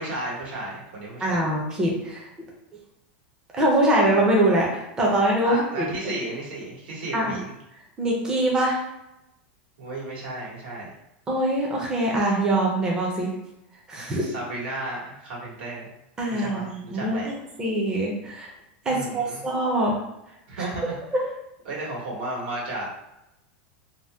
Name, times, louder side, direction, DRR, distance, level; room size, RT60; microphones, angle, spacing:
voice 1, 0.0-1.5 5.4-7.5 9.8-10.9 14.2-15.9 16.3-17.3 18.9-19.4 20.5-21.0 21.6-22.9, right 2 dB, 85° right, -4 dB, 1.2 m, -33 dB
voice 2, 1.2-2.3 3.5-5.9 7.1-7.4 8.0-8.8 11.3-13.3 13.9-14.3 16.2-18.5 18.9-20.0 20.6-20.7 21.1-21.2, right 1 dB, 15° right, -3 dB, 0.5 m, -23 dB
2.7 x 2.1 x 3.3 m, 0.88 s
supercardioid pair, 165°, 5 cm